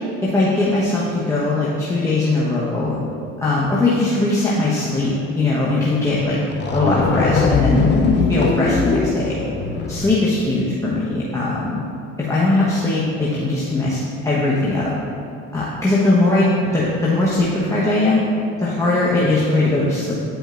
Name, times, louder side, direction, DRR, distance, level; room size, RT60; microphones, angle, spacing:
voice 1, 0.2-3.0 3.4-6.4 6.7-7.8 8.3-9.4 9.9-11.8 12.2-14.9 15.5-18.3 18.6-20.1, left 2 dB, 10° left, -8 dB, 1.1 m, -20 dB
sound 1, 6.2-6.3 6.5-10.3, left 4 dB, 35° left, 0.7 m, -20 dB
9.2 x 5.0 x 2.5 m, 2.6 s
supercardioid pair, 90°, 31 cm